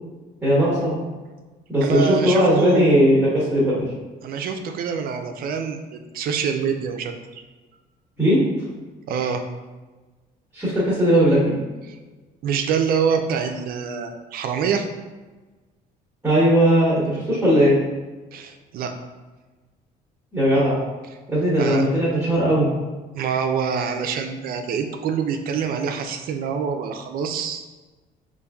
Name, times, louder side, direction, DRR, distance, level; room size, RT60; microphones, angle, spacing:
voice 1, 0.4-0.9 1.7-3.8 8.2-8.4 10.5-11.6 16.2-17.8 20.3-20.8 21.3-22.7, equal, 10° right, -8 dB, 1.3 m, -18 dB
voice 2, 1.8-3.1 4.2-7.4 9.1-9.4 11.8-12.0 12.4-14.9 18.3-18.9 21.6-21.8 23.1-27.6, right 6 dB, 60° right, 6 dB, 0.4 m, -25 dB
5.1 x 2.5 x 2.3 m, 1.2 s
cardioid pair, 110°, 17 cm